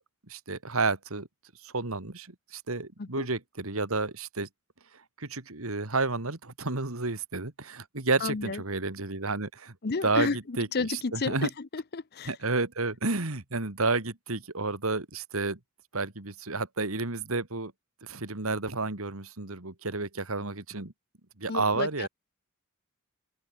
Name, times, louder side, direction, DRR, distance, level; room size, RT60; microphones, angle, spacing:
voice 1, 0.3-1.3 1.6-4.5 5.2-9.8 10.0-11.5 12.3-15.6 15.9-17.7 18.0-20.9 21.4-22.1, right 3 dB, 70° right, 2.4 m, -31 dB
voice 2, 8.2-8.6 9.8-12.3 21.5-22.1, left 4 dB, 45° left, 0.7 m, -32 dB
open air
head